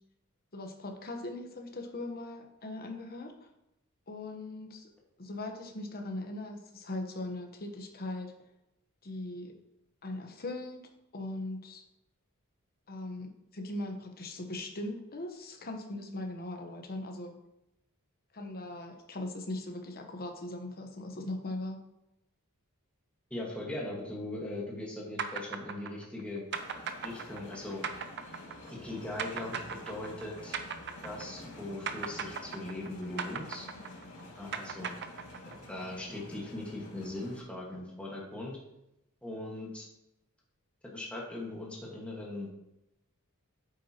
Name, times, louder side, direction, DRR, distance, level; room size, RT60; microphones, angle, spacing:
voice 1, 0.5-3.5 4.1-4.9 5.2-8.3 9.0-9.5 10.0-10.8 11.1-11.8 12.9-17.3 18.3-21.8, left 2 dB, 45° left, 4 dB, 1.1 m, -39 dB
voice 2, 23.3-26.4 27.0-27.8 28.7-30.6 31.0-33.7 34.4-34.9 35.4-38.6 39.2-39.9 40.8-42.5, left 1 dB, 5° left, -4 dB, 1.6 m, -40 dB
sound 1, 25.2-31.6 31.9-35.7, right 6 dB, 50° right, 0.7 m, -38 dB
sound 2, 26.5-37.4, left 1 dB, 70° left, 2.2 m, -49 dB
9.1 x 7.7 x 3.0 m, 0.86 s
head